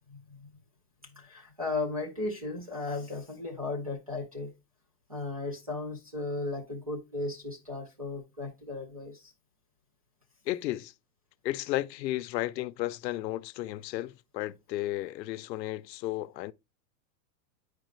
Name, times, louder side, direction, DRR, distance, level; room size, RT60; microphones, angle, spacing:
voice 1, 1.2-4.5 5.1-9.2, left 3 dB, 25° right, 0.3 m, -35 dB
voice 2, 10.5-10.9 11.4-16.5, left 15 dB, 90° left, 0.6 m, -33 dB
9.0 x 4.8 x 3.1 m
supercardioid pair, 175°, 49 cm